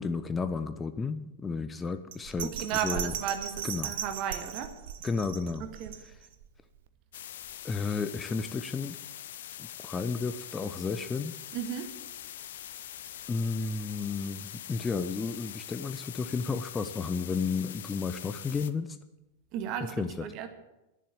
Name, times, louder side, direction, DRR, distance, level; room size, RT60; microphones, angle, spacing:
voice 1, 0.0-2.5 2.8-3.1 3.6-3.9 5.0-5.7 7.6-9.0 9.6-11.4 13.3-19.0 20.0-20.3, left 4 dB, 15° left, 11 dB, 0.7 m, -32 dB
Bell, 2.1-6.4 6.9-7.0, right 9 dB, 60° right, 1.0 m, -38 dB
voice 2, 2.4-4.8 5.6-5.9 11.5-12.0 19.5-20.5, right 9 dB, 40° right, 7 dB, 1.8 m, -35 dB
sound 1, 7.1-18.7, left 11 dB, 60° left, 0.7 m, -43 dB
11.0 x 11.0 x 8.7 m, 0.97 s
figure-of-eight pair, 90°, 0 cm